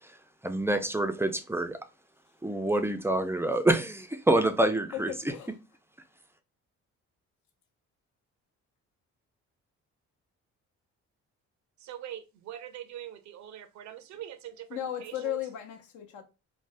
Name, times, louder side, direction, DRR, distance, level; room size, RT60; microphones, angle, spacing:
voice 1, 0.4-1.8 2.4-5.1, right 1 dB, 10° right, 0.3 m, -26 dB
voice 2, 4.9-5.5 14.7-16.2, left 12 dB, 75° left, 0.7 m, -36 dB
voice 3, 11.8-15.4, right 11 dB, 70° right, 0.5 m, -43 dB
3.3 x 2.1 x 2.5 m
cardioid pair, 90°, 30 cm